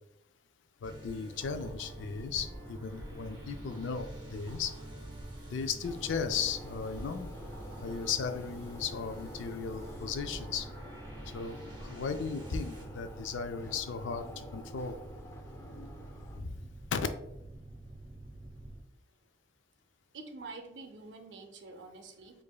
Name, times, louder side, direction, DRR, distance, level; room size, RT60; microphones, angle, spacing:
voice 1, 0.8-4.7 5.5-7.3 7.8-10.7 11.3-14.9 16.4-16.6 16.9-17.1, left 6 dB, 85° left, 9 dB, 0.4 m, -36 dB
sound 1, 0.8-12.8, right 1 dB, 25° right, 0.7 m, -50 dB
Boat Water vehicle, 1.4-18.8, right 1 dB, 45° right, 1.2 m, -47 dB
sound 2, 5.8-16.4, equal, 15° left, 0.4 m, -49 dB
voice 2, 20.1-22.4, right 3 dB, 75° right, 5 dB, 0.6 m, -47 dB
4.7 x 2.5 x 2.3 m, 0.91 s
head